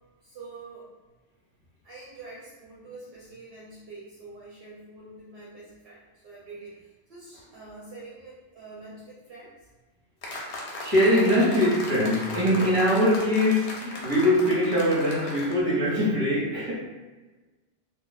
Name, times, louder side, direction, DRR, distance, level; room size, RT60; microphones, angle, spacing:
voice 1, 0.2-0.9 1.8-9.7, right 3 dB, 60° right, -6 dB, 0.8 m, -45 dB
sound 1, 10.2-15.6, left 1 dB, 65° left, 0.9 m, -37 dB
voice 2, 10.8-16.8, equal, 30° right, -7 dB, 1.1 m, -22 dB
2.4 x 2.3 x 3.9 m, 1.2 s
omnidirectional pair, 1.2 m